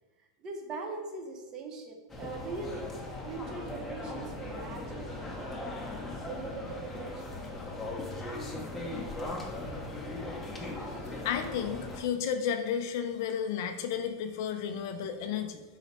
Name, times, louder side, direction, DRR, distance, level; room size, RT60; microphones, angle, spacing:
voice 1, 0.4-2.9 3.2-5.8 6.2-7.3, right 3 dB, 30° right, 2 dB, 0.6 m, -41 dB
sound 1, 2.1-12.0, left 2 dB, 10° left, 0.6 m, -39 dB
voice 2, 11.2-15.6, left 8 dB, 60° left, 7 dB, 0.4 m, -32 dB
3.9 x 2.1 x 4.1 m, 1.2 s
supercardioid pair, 145°, 2 cm